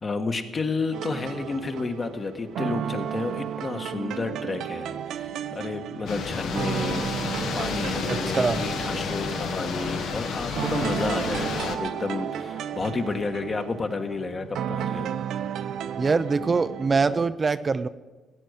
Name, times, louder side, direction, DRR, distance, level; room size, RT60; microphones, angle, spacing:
voice 1, 0.0-15.1, left 3 dB, 35° left, 7 dB, 1.3 m, -31 dB
ambient electro loop, 0.9-17.3, right 9 dB, 75° right, 0.6 m, -33 dB
sound 1, 6.1-11.8, left 5 dB, 80° left, 1.3 m, -31 dB
voice 2, 8.1-8.6 16.0-17.9, right 4 dB, 35° right, 12 dB, 0.5 m, -24 dB
15.5 x 9.1 x 6.5 m, 1.2 s
cardioid pair, 90°, 0 cm